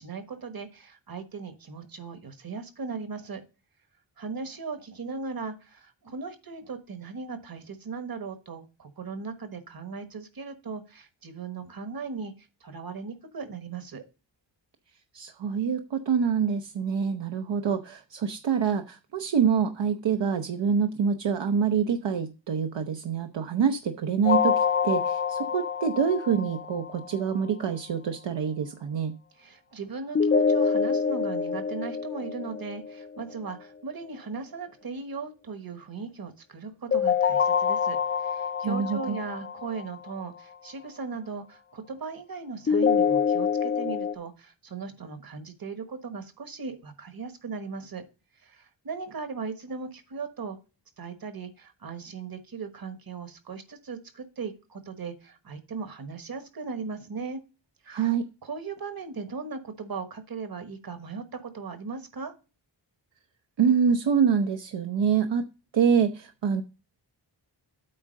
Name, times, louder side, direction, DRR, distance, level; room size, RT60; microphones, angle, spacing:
voice 1, 0.0-3.4 4.2-14.0 29.4-48.0 48.4-50.6 51.0-57.4 57.8-58.0 58.4-62.3, right 4 dB, 50° right, 9 dB, 1.3 m, -38 dB
voice 2, 15.1-29.1 38.6-39.2 57.9-58.3 63.6-65.5 65.7-66.6, right 7 dB, 70° right, 6 dB, 0.8 m, -26 dB
sound 1, 24.3-27.2 30.2-33.2 36.9-40.1 42.7-44.2, left 6 dB, 30° left, 0.4 m, -26 dB
8.6 x 3.7 x 6.4 m, 0.31 s
wide cardioid pair, 180°, 44 cm